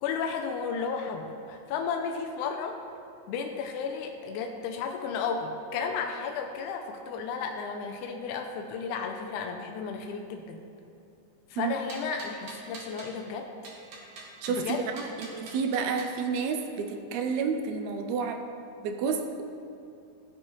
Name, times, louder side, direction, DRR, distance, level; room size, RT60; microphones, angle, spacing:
voice 1, 0.0-2.8 3.3-10.6 11.5-13.5 14.5-14.9, left 5 dB, 85° left, 3 dB, 2.0 m, -33 dB
sound 1, 11.9-13.2 13.6-16.1, right 3 dB, 60° right, 1.5 m, -45 dB
voice 2, 14.4-18.4 18.8-19.4, right 5 dB, 80° right, 5 dB, 1.7 m, -30 dB
14.5 x 5.1 x 3.0 m, 2.7 s
omnidirectional pair, 3.5 m